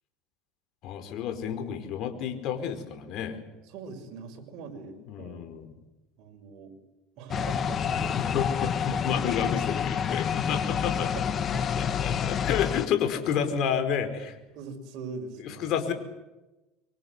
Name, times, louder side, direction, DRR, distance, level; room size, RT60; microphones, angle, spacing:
voice 1, 0.8-3.4 5.1-5.7 8.2-11.1 11.8-14.4 15.4-15.9, left 8 dB, 50° left, 7 dB, 4.7 m, -30 dB
voice 2, 3.7-5.4 6.2-6.7 7.2-8.1 8.9-9.5 10.5-12.0 14.5-15.7, right 4 dB, 55° right, 4 dB, 6.1 m, -42 dB
sound 1, 7.3-12.9, left 7 dB, 35° left, 1.3 m, -28 dB
26.0 x 24.0 x 8.2 m, 1.0 s
supercardioid pair, 120°, 0 cm